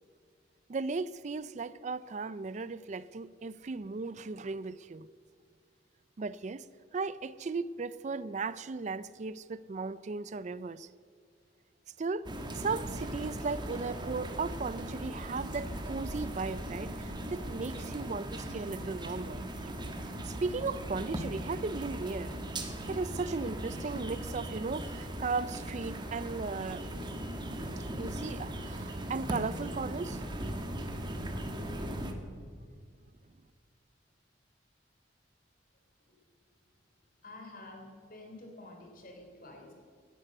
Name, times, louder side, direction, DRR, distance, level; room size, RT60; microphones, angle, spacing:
voice 1, 0.7-5.1 6.2-6.6 6.9-10.9 12.0-12.3 12.5-19.4 20.2-22.4 22.9-26.9 28.0-30.2, right 4 dB, 40° right, 0.4 m, -36 dB
sound 1, 12.2-32.1, right 1 dB, 25° right, 1.4 m, -38 dB
voice 2, 37.2-39.7, left 2 dB, 50° left, 3.4 m, -49 dB
18.0 x 10.0 x 6.6 m
head